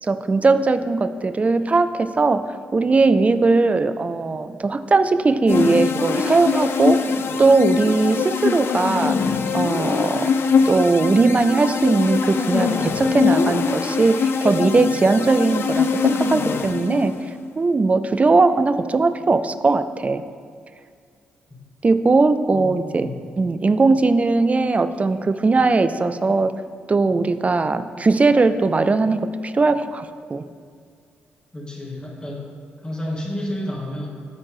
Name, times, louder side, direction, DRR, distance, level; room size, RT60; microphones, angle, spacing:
voice 1, 0.0-2.4 2.7-7.0 7.4-9.2 9.5-10.3 10.7-17.1 17.6-20.2 21.8-23.1 23.4-26.5 26.9-30.4, right 3 dB, 30° right, 11 dB, 0.4 m, -19 dB
sound 1, 5.5-17.3, left 5 dB, 55° left, 0.5 m, -22 dB
voice 2, 22.5-23.3 31.5-32.5 32.8-34.1, left 1 dB, 20° left, -3 dB, 1.9 m, -31 dB
9.6 x 4.3 x 4.7 m, 2.1 s
hypercardioid pair, 40°, 5 cm